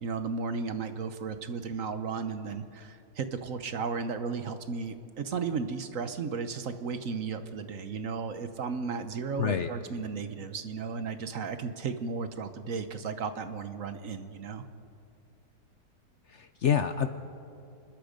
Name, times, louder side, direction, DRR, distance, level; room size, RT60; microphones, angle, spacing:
voice 1, 0.0-14.7, right 5 dB, 55° right, 9 dB, 1.2 m, -34 dB
voice 2, 9.4-9.7 16.3-17.1, left 8 dB, 60° left, 9 dB, 0.8 m, -27 dB
25.5 x 21.0 x 5.2 m, 2.5 s
omnidirectional pair, 1.8 m